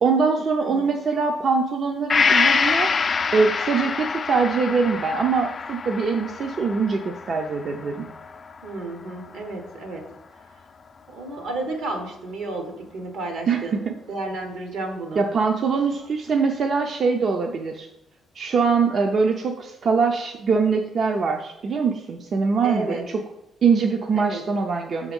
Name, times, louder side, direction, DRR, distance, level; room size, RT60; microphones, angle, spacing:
voice 1, 0.0-2.9 3.3-8.1 13.5-13.9 15.2-17.9 18.4-23.2 23.6-25.1, right 5 dB, 55° right, 3 dB, 0.5 m, -23 dB
voice 2, 0.6-0.9 8.6-10.1 11.1-13.8 14.1-15.2 22.6-23.0 24.1-24.4, right 2 dB, 80° right, 4 dB, 1.3 m, -32 dB
Gong, 2.1-9.7 10.1-10.2, left 5 dB, 40° left, 0.3 m, -26 dB
6.2 x 3.6 x 5.3 m, 0.84 s
cardioid pair, 90°, 0 cm